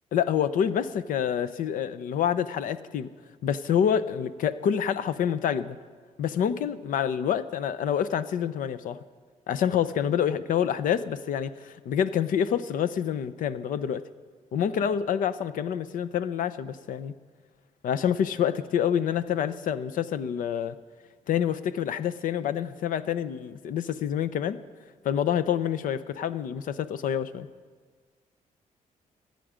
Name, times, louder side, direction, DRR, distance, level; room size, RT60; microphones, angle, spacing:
voice 1, 0.1-3.1 3.4-5.8 6.2-9.0 9.5-14.0 14.5-17.1 17.8-20.8 21.3-24.6 25.0-27.5, left 9 dB, 80° left, 14 dB, 0.7 m, -27 dB
27.5 x 9.3 x 5.1 m, 1.5 s
cardioid pair, 145°, 14 cm